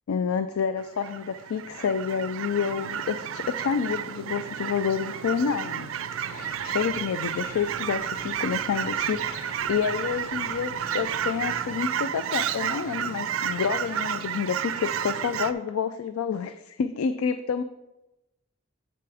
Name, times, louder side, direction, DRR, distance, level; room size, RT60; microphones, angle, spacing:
voice 1, 0.1-5.9 6.2-17.6, left 6 dB, 90° left, 11 dB, 0.4 m, -29 dB
Fowl / Chirp tweet, 0.8-15.5, right 9 dB, 70° right, 0.4 m, -31 dB
sound 1, 6.2-11.7, left 1 dB, 45° left, 1.1 m, -47 dB
8.4 x 6.8 x 3.4 m, 0.97 s
head